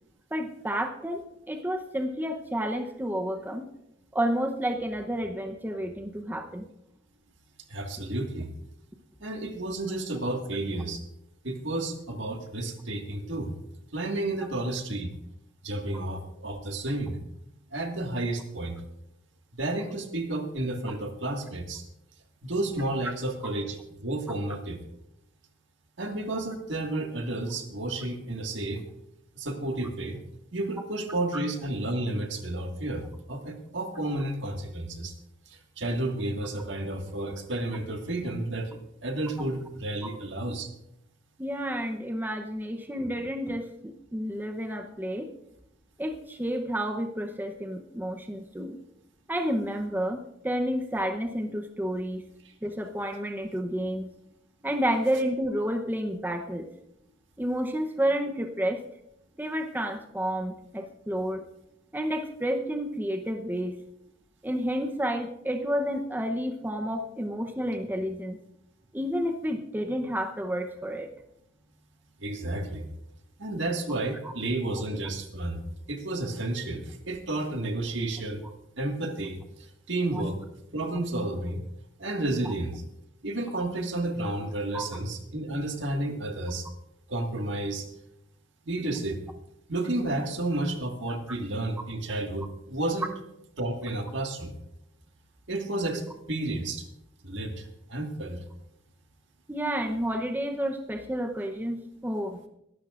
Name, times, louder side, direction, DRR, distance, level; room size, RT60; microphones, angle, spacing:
voice 1, 0.3-3.7 4.1-6.7 41.4-45.3 46.0-48.8 49.3-52.2 52.6-54.1 54.6-56.7 57.4-58.8 59.4-61.5 61.9-63.8 64.4-68.4 68.9-71.1 80.1-80.2 82.4-82.5 84.7-84.9 99.5-101.8 102.0-102.4, equal, 10° right, 4 dB, 0.8 m, -30 dB
voice 2, 7.7-8.5 9.2-11.0 11.4-13.5 13.9-15.1 15.6-17.2 17.7-18.8 19.6-21.8 22.4-24.8 26.0-28.8 29.4-30.2 30.5-35.1 35.5-40.7 72.2-72.9 73.4-78.4 78.8-80.4 80.7-81.6 82.0-82.8 83.2-86.7 87.1-87.9 88.7-89.2 89.7-93.1 93.6-94.5 95.5-96.8 97.2-98.4, right 2 dB, 70° right, 4 dB, 1.8 m, -31 dB
22.0 x 12.0 x 2.5 m, 0.80 s
head